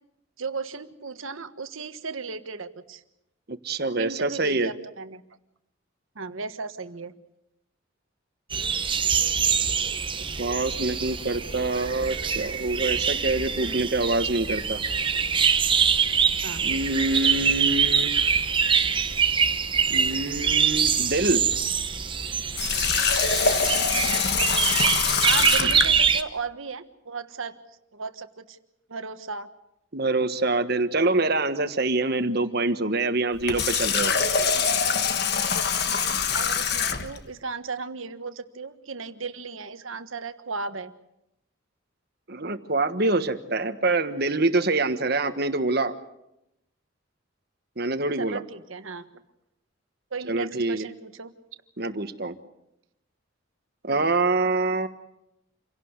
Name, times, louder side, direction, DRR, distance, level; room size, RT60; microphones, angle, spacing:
voice 1, 0.4-3.0 4.0-5.2 6.1-7.1 13.6-13.8 16.4-16.7 25.2-27.6 27.9-28.6 28.9-29.5 35.9-40.9 48.2-49.1 50.1-51.3 53.9-54.1, right 4 dB, 80° right, 10 dB, 1.4 m, -36 dB
voice 2, 3.5-4.7 10.4-14.8 16.6-18.1 19.9-21.4 25.6-25.7 29.9-34.1 42.3-45.9 47.8-48.4 50.3-50.9 51.8-52.3 53.8-54.9, right 2 dB, 50° right, 10 dB, 1.4 m, -25 dB
sound 1, 8.5-26.2, right 6 dB, 25° right, 1.1 m, -24 dB
Water tap faucet, 22.5-25.9 33.3-37.2, left 6 dB, 50° left, 1.5 m, -24 dB
27.5 x 17.5 x 8.1 m, 0.85 s
head